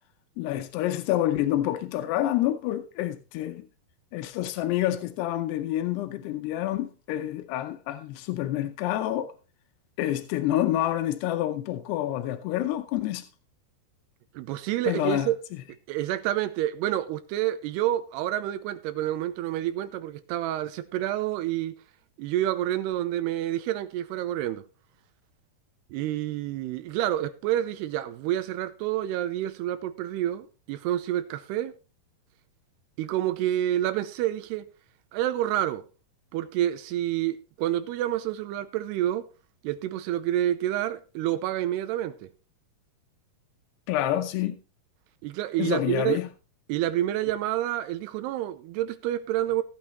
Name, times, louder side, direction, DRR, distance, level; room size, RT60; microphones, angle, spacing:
voice 1, 0.4-3.7 4.1-9.3 10.0-13.3 14.9-15.3 43.9-44.6 45.6-46.3, left 13 dB, 90° left, 2.9 m, -28 dB
voice 2, 14.3-15.4 15.9-21.7 22.2-24.6 25.9-31.7 33.0-34.7 35.1-35.8 36.3-39.3 39.6-42.3 45.2-46.2 46.7-49.6, right 13 dB, 90° right, 2.8 m, -28 dB
15.5 x 8.8 x 3.1 m
omnidirectional pair, 4.6 m